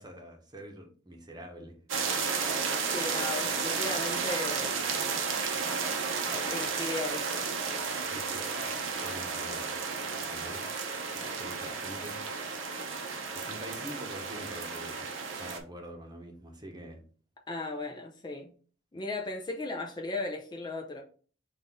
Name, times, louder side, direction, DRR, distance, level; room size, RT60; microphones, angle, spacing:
voice 1, 0.0-1.7 8.1-8.7 9.0-9.8 10.2-10.6 11.0-12.2 13.3-15.1 15.4-17.0, equal, 20° right, 1.0 m, -45 dB
sound 1, 1.9-15.6, right 5 dB, 85° right, 0.8 m, -33 dB
voice 2, 2.9-4.8 6.3-7.4 17.5-18.5 18.9-21.0, left 2 dB, 25° left, 0.5 m, -36 dB
5.8 x 2.6 x 3.5 m
head